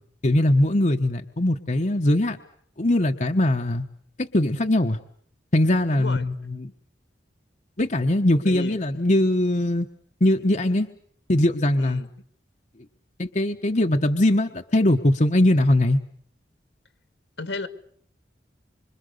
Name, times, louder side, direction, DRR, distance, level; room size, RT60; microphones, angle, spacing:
voice 1, 0.2-2.4 2.8-3.8 4.2-5.0 5.5-6.7 7.8-9.9 10.2-10.9 11.3-12.0 13.2-16.0, left 1 dB, 40° left, 4 dB, 1.3 m, -21 dB
voice 2, 5.9-6.2 8.5-8.8 11.8-12.1 17.4-17.7, left 2 dB, 75° left, 10 dB, 2.3 m, -33 dB
26.0 x 26.0 x 6.7 m, 0.63 s
head